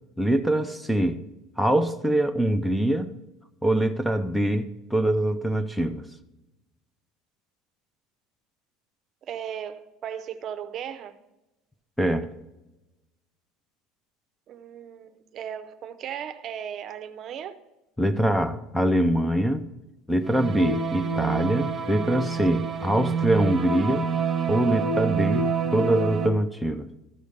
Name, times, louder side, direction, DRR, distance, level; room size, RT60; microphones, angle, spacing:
voice 1, 0.2-1.2 1.6-3.1 3.6-6.1 12.0-12.3 18.0-19.7 20.1-24.1 24.5-26.9, right 1 dB, 5° left, 0.5 m, -24 dB
voice 2, 9.2-11.2 14.5-17.6 22.3-22.4, right 9 dB, 40° right, 0.7 m, -36 dB
sound 1, 20.2-26.3, right 5 dB, 20° right, 1.3 m, -27 dB
13.5 x 5.0 x 6.6 m
cardioid pair, 145°, 0 cm